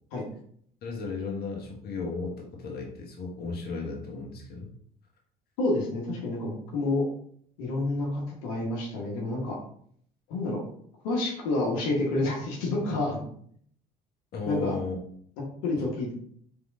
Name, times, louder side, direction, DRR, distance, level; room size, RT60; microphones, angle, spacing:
voice 1, 0.8-4.7 14.3-15.0, left 4 dB, 55° left, 0 dB, 1.3 m, -35 dB
voice 2, 5.6-7.0 7.6-9.6 10.3-10.6 11.0-13.2 14.4-14.8 15.6-16.1, left 2 dB, 75° left, -2 dB, 1.2 m, -28 dB
3.7 x 3.5 x 3.6 m, 0.63 s
hypercardioid pair, 65°, 20 cm